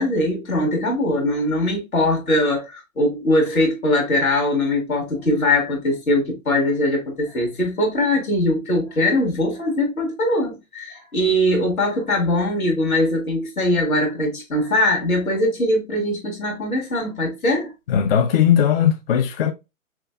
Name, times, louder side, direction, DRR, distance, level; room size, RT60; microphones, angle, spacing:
voice 1, 0.0-17.7, left 1 dB, 85° left, 2.0 m, -21 dB
voice 2, 17.9-19.5, left 9 dB, 45° left, 0.5 m, -18 dB
5.7 x 2.3 x 2.4 m
figure-of-eight pair, 125°, 41 cm